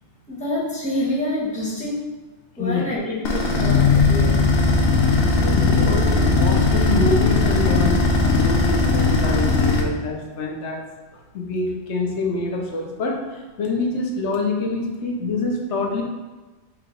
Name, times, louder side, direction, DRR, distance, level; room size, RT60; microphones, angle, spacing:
voice 1, 0.3-2.1 2.6-4.4 9.2-9.3, left 1 dB, 5° left, -8 dB, 1.1 m, -27 dB
sound 1, 3.2-9.8, left 3 dB, 65° left, 0.9 m, -18 dB
voice 2, 4.8-8.0 8.3-10.8 11.3-16.0, left 3 dB, 85° left, 0 dB, 1.0 m, -26 dB
4.8 x 2.9 x 3.7 m, 1.2 s
omnidirectional pair, 1.2 m